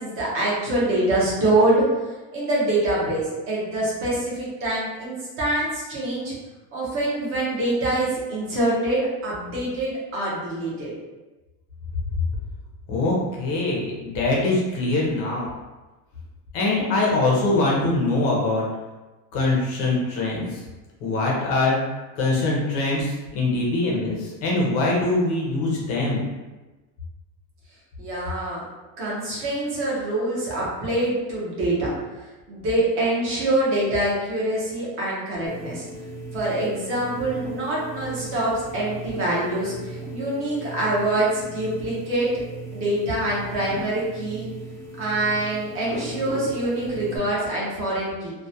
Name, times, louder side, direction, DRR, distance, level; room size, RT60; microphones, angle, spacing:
voice 1, 0.0-6.3 6.7-10.9 28.0-28.6 29.0-31.9 32.5-35.9 36.3-42.4 42.7-44.5 45.0-48.3, right 1 dB, 30° right, -6 dB, 0.6 m, -25 dB
voice 2, 12.9-15.5 16.5-18.6 19.3-20.6 21.0-21.8 22.2-26.2, left 2 dB, 35° left, -3 dB, 0.4 m, -23 dB
sound 1, 35.5-47.2, right 2 dB, 5° right, 0.9 m, -37 dB
2.2 x 2.1 x 2.6 m, 1.2 s
cardioid pair, 180°, 43 cm